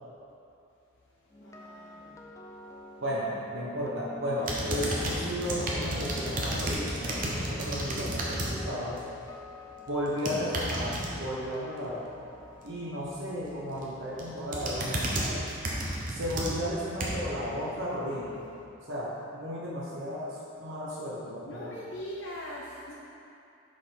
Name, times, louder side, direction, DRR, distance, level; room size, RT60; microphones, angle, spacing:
sound 1, 1.3-15.4 15.6-15.9, left 2 dB, 15° left, 0.5 m, -47 dB
voice 1, 1.4-2.2 21.5-22.9, left 1 dB, 55° left, -4 dB, 0.7 m, -41 dB
voice 2, 3.0-9.0 9.9-12.0 12.6-15.5 16.1-18.4 18.8-21.7, equal, 65° right, -6 dB, 1.0 m, -34 dB
sound 2, 4.4-8.5 8.9-9.3 10.1-11.1 13.5-13.8 14.2-17.4 17.9-18.0, right 1 dB, 40° right, 1.0 m, -32 dB
6.3 x 5.1 x 5.4 m, 2.6 s
head